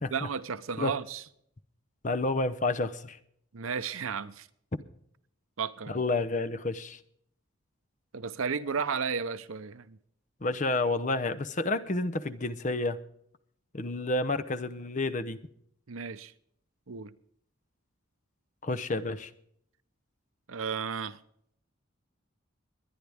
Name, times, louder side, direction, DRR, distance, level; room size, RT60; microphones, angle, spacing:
voice 1, 0.1-1.2 3.5-4.5 5.6-6.0 8.1-10.0 15.9-16.3 16.9-17.1 20.5-21.2, right 6 dB, 80° right, 0.8 m, -33 dB
voice 2, 2.0-3.2 5.9-7.0 10.4-13.0 13.7-15.4 18.6-19.3, left 2 dB, 35° left, 0.7 m, -30 dB
22.0 x 9.7 x 3.5 m
head